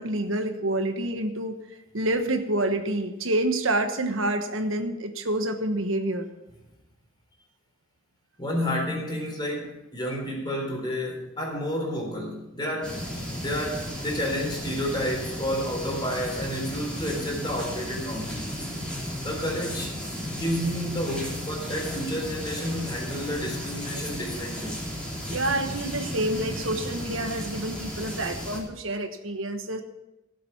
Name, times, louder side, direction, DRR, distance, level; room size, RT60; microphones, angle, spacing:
voice 1, 0.0-1.6 1.9-6.3 25.3-29.8, right 1 dB, 75° right, 6 dB, 1.3 m, -28 dB
voice 2, 8.4-13.0 13.3-18.4 19.2-20.0 20.3-24.8, equal, 20° left, 0 dB, 3.9 m, -30 dB
sound 1, 12.8-28.6, equal, 5° left, 3.6 m, -34 dB
17.0 x 7.6 x 5.8 m, 0.95 s
head